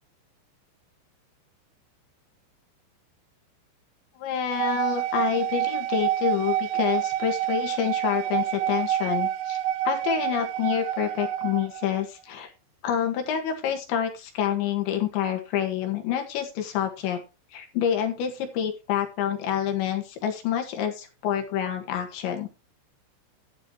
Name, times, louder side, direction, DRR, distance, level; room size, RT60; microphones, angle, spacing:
voice 1, 4.2-9.6 9.8-12.5 12.8-17.2 17.5-22.5, left 9 dB, 70° left, 4 dB, 3.8 m, -27 dB
sound 1, 4.5-12.0, right 12 dB, 90° right, 2.3 m, -28 dB
11.5 x 11.0 x 3.1 m, 0.27 s
omnidirectional pair, 5.7 m